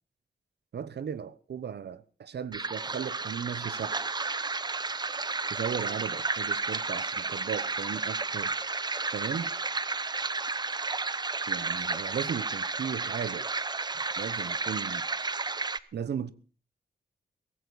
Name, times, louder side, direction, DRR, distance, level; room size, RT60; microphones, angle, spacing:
voice 1, 0.7-4.0 5.5-8.5 9.1-9.5 11.5-13.5 13.9-15.0 15.9-16.3, right 8 dB, 75° right, 1.0 m, -36 dB
sound 1, 2.5-15.8, right 3 dB, 25° right, 0.6 m, -32 dB
17.0 x 15.5 x 4.1 m
wide cardioid pair, 140°, 18 cm